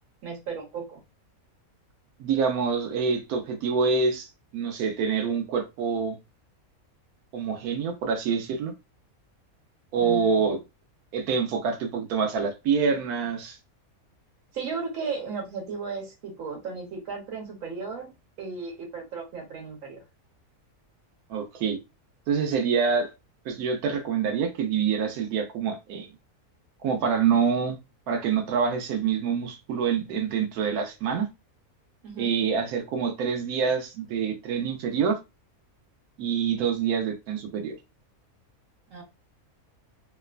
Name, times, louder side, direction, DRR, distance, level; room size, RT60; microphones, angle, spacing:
voice 1, 0.2-1.0 10.0-10.4 14.5-20.0 32.0-32.3 38.9-39.0, right 5 dB, 65° right, 1.3 m, -35 dB
voice 2, 2.2-4.3 4.5-6.2 7.3-8.7 9.9-10.6 11.1-13.6 21.3-21.8 22.3-23.1 23.4-26.1 26.8-27.8 28.1-31.3 32.2-35.2 36.2-37.8, right 6 dB, 85° right, 1.1 m, -26 dB
3.0 x 2.1 x 2.4 m
omnidirectional pair, 1.5 m